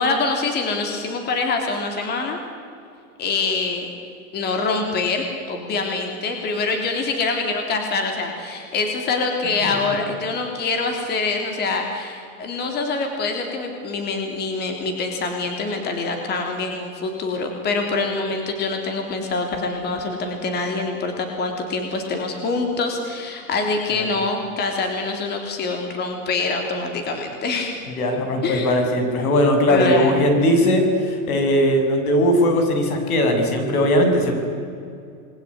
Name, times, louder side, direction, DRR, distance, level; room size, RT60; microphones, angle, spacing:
voice 1, 0.0-2.4 3.2-3.9 4.3-27.7 28.4-28.7 29.7-30.3, left 3 dB, 20° left, 4 dB, 3.3 m, -25 dB
voice 2, 27.9-34.3, equal, 75° left, 5 dB, 7.4 m, -19 dB
28.0 x 21.5 x 9.9 m, 2.5 s
supercardioid pair, 155°, 44 cm